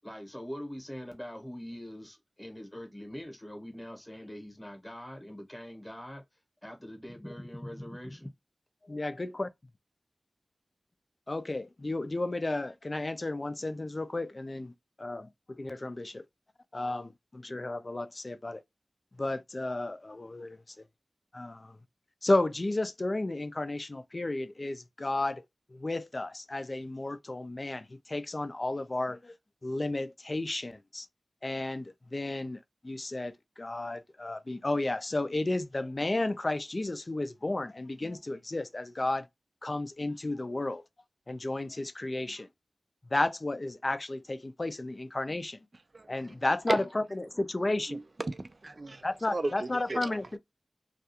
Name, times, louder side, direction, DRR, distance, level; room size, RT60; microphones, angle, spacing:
voice 1, 0.0-6.2 6.6-8.3, equal, 10° left, 0.9 m, -43 dB
voice 2, 8.8-9.5 11.3-14.7 15.0-16.2 16.7-18.6 19.2-20.8 21.3-21.8 22.2-25.4 25.7-29.3 29.6-31.1 31.4-39.3 39.6-40.8 41.3-42.5 43.1-45.6 46.1-48.0 49.0-50.4, left 2 dB, 45° left, 0.4 m, -33 dB
voice 3, 47.9-49.0 49.3-50.2, right 2 dB, 55° right, 0.4 m, -34 dB
2.4 x 2.3 x 2.8 m
cardioid pair, 45°, 0 cm